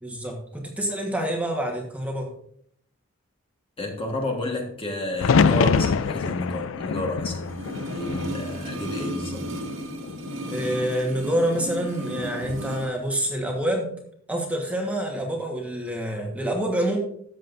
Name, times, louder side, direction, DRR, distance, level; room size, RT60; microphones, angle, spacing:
voice 1, 0.0-2.3 10.5-13.9 14.3-17.0, right 1 dB, 5° right, 1.3 m, -27 dB
voice 2, 3.8-9.5, left 1 dB, 25° left, 1.5 m, -31 dB
sound 1, 5.2-9.2 9.6-10.4 12.2-12.7, left 5 dB, 65° left, 0.4 m, -25 dB
sound 2, 7.4-12.9 13.2-13.3, equal, 70° right, 2.0 m, -34 dB
13.5 x 7.6 x 2.6 m
head